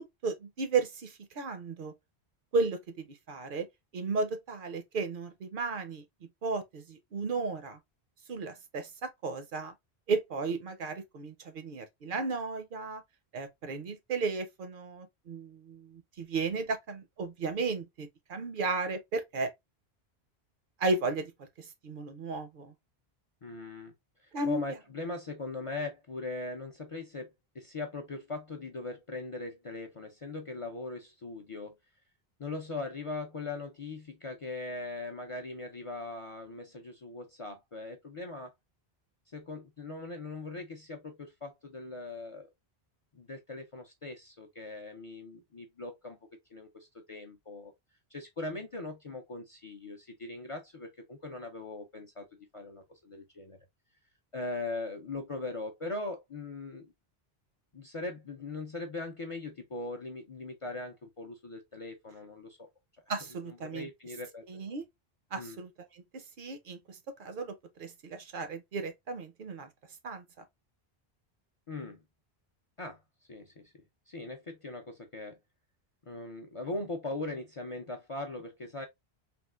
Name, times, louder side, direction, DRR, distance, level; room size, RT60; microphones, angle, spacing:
voice 1, 0.2-1.9 2.5-3.7 3.9-6.0 6.4-7.8 8.3-9.7 10.1-13.0 13.3-19.5 20.8-22.7 24.3-24.6 63.1-63.9 64.5-64.8 65.3-69.7 70.0-70.2, right 3 dB, 60° right, 0.6 m, -34 dB
voice 2, 23.4-23.9 24.2-27.3 27.5-31.8 32.4-38.5 39.3-42.5 43.1-46.2 46.5-47.7 48.1-52.2 52.5-53.6 54.3-56.9 57.7-62.7 63.4-64.4 65.3-65.6 71.7-72.0 72.8-73.0 73.3-73.7 74.1-75.4 76.1-78.9, left 3 dB, 45° left, 0.4 m, -40 dB
3.6 x 2.4 x 2.2 m
omnidirectional pair, 1.1 m